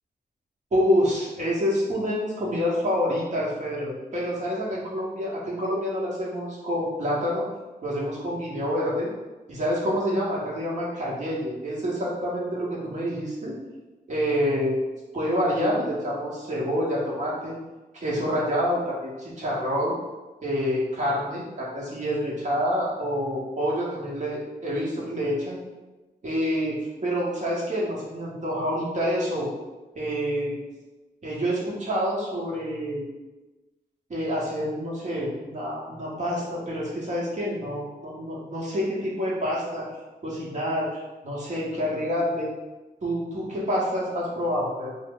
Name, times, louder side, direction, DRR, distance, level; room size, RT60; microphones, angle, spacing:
voice 1, 0.7-7.4 7.8-9.1 9.5-13.6 14.1-14.7 15.1-17.5 18.0-19.9 20.4-25.6 26.2-29.5 29.9-30.6 31.2-33.0 34.1-39.9 40.2-42.5 43.0-45.0, equal, 45° right, -6 dB, 0.9 m, -27 dB
3.1 x 2.0 x 3.7 m, 1.2 s
wide cardioid pair, 100°, 17 cm